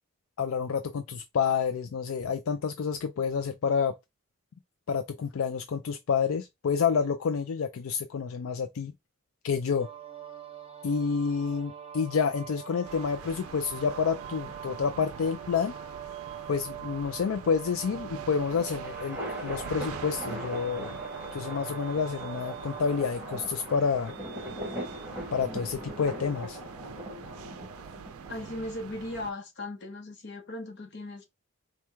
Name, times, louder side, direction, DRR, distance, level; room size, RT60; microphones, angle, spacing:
voice 1, 0.4-3.9 4.9-8.9 9.4-9.9 10.8-15.7 16.5-21.0 21.3-24.1 25.3-26.6, left 6 dB, 75° left, 0.4 m, -29 dB
sound 1, 9.8-23.1, right 8 dB, 25° right, 0.7 m, -43 dB
sound 2, 12.8-29.3, right 7 dB, 90° right, 0.4 m, -45 dB
sound 3, 18.1-28.6, equal, 10° right, 1.4 m, -40 dB
voice 2, 28.3-31.3, left 1 dB, 55° left, 0.9 m, -38 dB
4.4 x 2.2 x 3.4 m
head